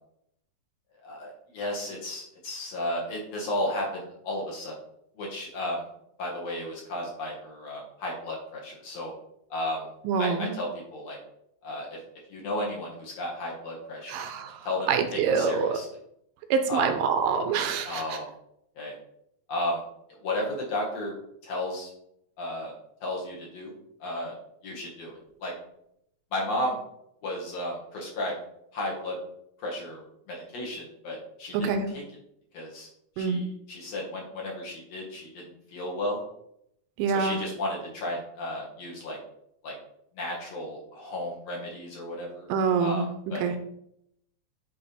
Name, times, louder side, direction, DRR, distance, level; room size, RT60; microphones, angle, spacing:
voice 1, 1.0-4.7 5.2-5.8 6.2-9.1 9.5-9.9 10.2-11.2 11.6-12.0 12.3-14.2 14.6-15.9 16.7-16.9 17.9-18.3 18.8-18.9 19.5-19.8 20.2-21.1 21.4-21.9 22.4-22.7 23.0-23.7 24.0-24.3 24.6-25.5 26.3-26.8 27.2-28.4 28.7-29.2 29.6-32.0 32.5-32.9 33.2-35.4 35.7-36.2 37.1-39.2 39.6-39.7 40.2-42.5 42.8-43.6, left 1 dB, 55° left, -2 dB, 2.2 m, -33 dB
voice 2, 10.1-10.5 14.1-14.6 14.9-15.8 16.5-18.2 31.6-31.9 33.2-33.4 37.0-37.4 42.5-43.0 43.4-43.5, right 5 dB, 80° right, 7 dB, 2.3 m, -25 dB
9.0 x 3.4 x 4.4 m, 0.74 s
omnidirectional pair, 4.1 m